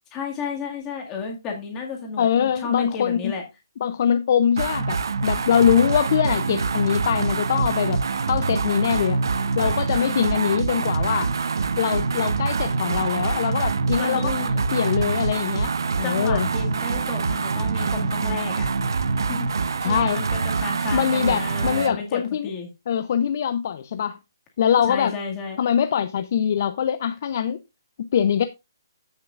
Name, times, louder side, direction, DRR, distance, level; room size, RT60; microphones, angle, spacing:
voice 1, 0.1-3.4 14.0-14.6 16.0-18.7 19.3-22.7 24.9-25.6, left 5 dB, 15° left, 2.0 m, -32 dB
voice 2, 2.2-3.3 3.8-8.0 8.3-9.2 9.6-11.3 11.8-14.4 14.7-16.5 19.8-20.2 20.9-22.5 22.9-24.2 24.6-25.1 25.6-27.6 28.0-28.4, left 8 dB, 40° left, 0.6 m, -23 dB
sound 1, 4.6-22.0, right 4 dB, 75° right, 0.7 m, -25 dB
14.0 x 6.4 x 2.4 m
hypercardioid pair, 170°, 2 cm